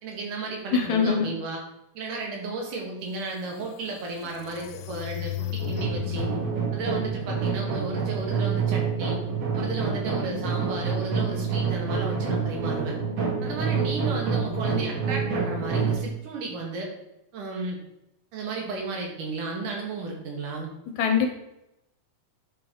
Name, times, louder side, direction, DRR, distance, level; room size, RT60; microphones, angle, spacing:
voice 1, 0.0-1.6 1.9-6.3 6.7-9.2 9.5-12.9 13.4-16.9 17.3-17.8 18.3-20.7, right 3 dB, 75° right, -1 dB, 3.2 m, -33 dB
voice 2, 0.7-1.3 21.0-21.3, left 6 dB, 70° left, 3 dB, 2.1 m, -22 dB
sound 1, 2.8-2.9 3.4-6.6, left 13 dB, 90° left, 2.2 m, -35 dB
sound 2, 5.6-16.0, right 5 dB, 50° right, 2.8 m, -27 dB
10.0 x 4.6 x 3.9 m, 0.86 s
omnidirectional pair, 3.8 m